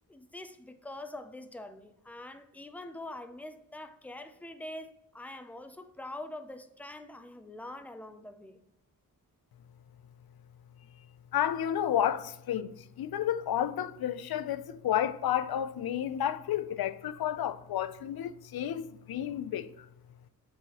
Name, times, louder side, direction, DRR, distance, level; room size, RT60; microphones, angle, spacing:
voice 1, 0.1-8.6, left 1 dB, 5° left, 0.4 m, -44 dB
voice 2, 11.3-19.9, left 10 dB, 85° left, 0.5 m, -31 dB
7.8 x 4.7 x 2.9 m
wide cardioid pair, 160°, 36 cm